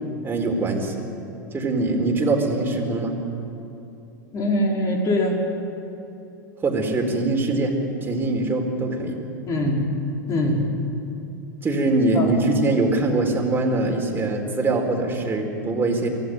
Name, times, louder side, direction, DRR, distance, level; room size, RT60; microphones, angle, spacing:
voice 1, 0.2-1.0 1.5-3.1 6.6-7.7 8.0-9.2 11.6-16.1, right 2 dB, 20° right, 1 dB, 4.1 m, -23 dB
voice 2, 4.3-5.4 9.5-9.8 10.3-10.6 12.1-12.7, left 1 dB, 35° left, -1 dB, 5.1 m, -23 dB
24.0 x 16.5 x 7.9 m, 2.8 s
hypercardioid pair, 95°, 11 cm